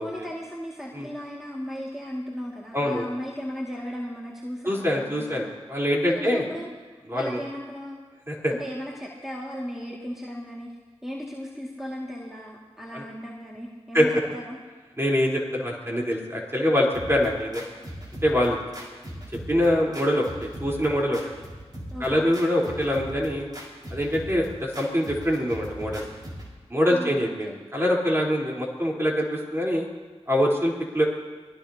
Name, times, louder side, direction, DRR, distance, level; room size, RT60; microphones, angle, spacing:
voice 1, 0.0-5.6 6.1-6.7 7.1-8.0 8.5-10.7 11.0-14.6 21.9-22.3 26.9-27.6, equal, 5° right, -4 dB, 2.2 m, -36 dB
voice 2, 2.7-3.1 4.6-6.4 7.1-7.4 8.3-8.5 12.9-13.0 13.9-14.1 15.0-17.6 18.2-18.6 19.5-21.2 22.0-23.5 23.9-26.0 26.7-29.9 30.3-31.0, equal, 20° right, -3 dB, 4.0 m, -24 dB
sound 1, 16.9-26.5, equal, 40° right, 5.1 m, -39 dB
24.0 x 18.0 x 2.9 m, 1.4 s
wide cardioid pair, 45°, 11 cm